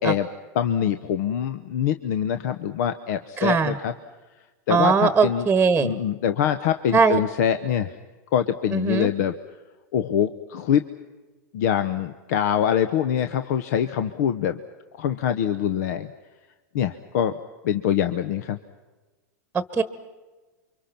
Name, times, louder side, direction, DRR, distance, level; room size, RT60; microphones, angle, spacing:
voice 1, 0.5-3.9 4.7-5.5 5.8-8.0 8.3-9.3 9.9-10.8 11.5-14.6 15.0-16.1 16.7-17.3 17.6-18.6, left 9 dB, 65° left, 10 dB, 1.0 m, -24 dB
voice 2, 3.4-3.8 4.7-5.9 6.9-7.2 8.7-9.1 19.5-19.8, right 5 dB, 10° right, 13 dB, 1.3 m, -20 dB
29.0 x 24.5 x 5.9 m, 1.2 s
hypercardioid pair, 110°, 10 cm